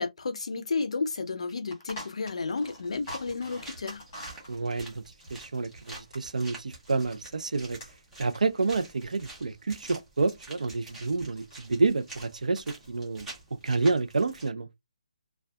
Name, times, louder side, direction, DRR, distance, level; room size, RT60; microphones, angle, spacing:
voice 1, 0.0-4.0, left 4 dB, 55° left, 0.4 m, -32 dB
sound 1, 0.7-0.8 1.1-1.2 1.5-7.2 7.5-10.0 10.3-11.1 11.3-11.6 12.0-12.4 12.7-13.4, equal, 15° left, 1.2 m, -47 dB
sound 2, 2.8-14.5, right 2 dB, 5° right, 0.4 m, -48 dB
voice 2, 4.5-5.0 5.3-7.8 8.2-13.3 13.6-14.7, right 3 dB, 85° right, 0.4 m, -29 dB
2.6 x 2.2 x 2.2 m
hypercardioid pair, 175°, 4 cm